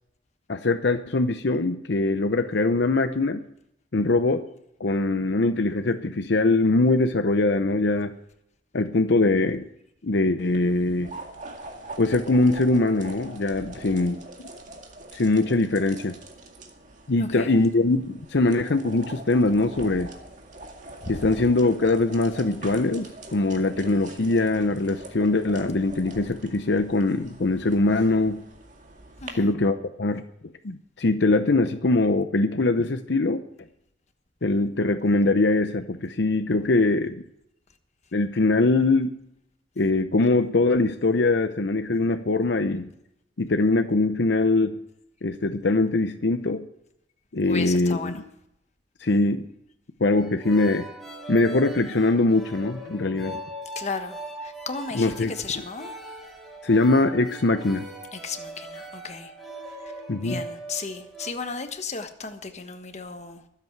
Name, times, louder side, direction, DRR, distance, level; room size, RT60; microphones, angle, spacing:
voice 1, 0.5-3.4 3.9-4.4 4.8-8.1 8.7-9.7 10.0-11.1 12.0-14.2 15.1-16.1 17.1-20.1 21.1-28.4 29.3-30.2 30.6-33.4 34.4-37.2 38.1-39.1 39.8-42.9 43.4-44.8 45.2-46.7 47.3-48.2 49.0-49.5 50.0-50.9 51.3-53.4 54.9-55.3 56.6-57.8 60.1-60.4, left 2 dB, 65° left, 0.7 m, -22 dB
sound 1, 10.4-29.3, right 2 dB, 45° right, 2.1 m, -43 dB
voice 2, 17.2-17.5 21.0-21.2 29.2-29.5 47.4-48.2 53.7-55.9 58.1-59.3 59.8-59.9 60.2-63.4, left 4 dB, 40° left, 1.3 m, -35 dB
sound 2, 50.1-61.3, right 1 dB, ahead, 2.7 m, -40 dB
23.0 x 8.3 x 4.6 m
head